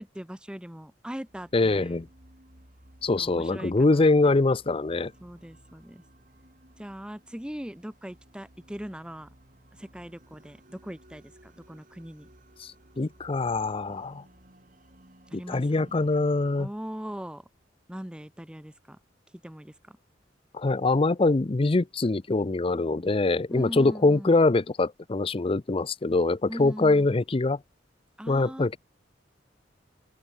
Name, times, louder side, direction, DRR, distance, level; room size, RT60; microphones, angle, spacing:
voice 1, 0.0-2.0 3.2-4.1 5.2-6.0 6.8-9.3 9.8-12.3 15.3-16.0 16.6-17.4 17.9-19.0 19.4-20.0 23.5-24.4 26.5-27.1 28.2-28.8, equal, 5° right, 0.8 m, -40 dB
sound 1, 1.2-16.7, right 1 dB, 45° right, 5.5 m, -57 dB
voice 2, 1.5-2.1 3.0-5.1 12.6-12.7 13.0-14.2 15.5-16.7 20.5-27.6 28.3-28.8, left 3 dB, 30° left, 0.5 m, -23 dB
open air
head